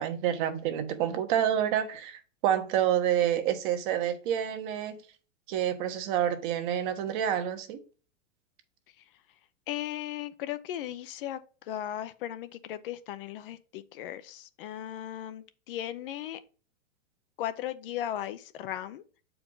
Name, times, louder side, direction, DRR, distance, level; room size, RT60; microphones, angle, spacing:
voice 1, 0.0-5.0 5.5-7.8, right 10 dB, 40° right, 1.2 m, -28 dB
voice 2, 9.7-16.4 17.4-19.0, left 12 dB, 45° left, 0.6 m, -37 dB
7.5 x 4.7 x 3.8 m
supercardioid pair, 150°, 38 cm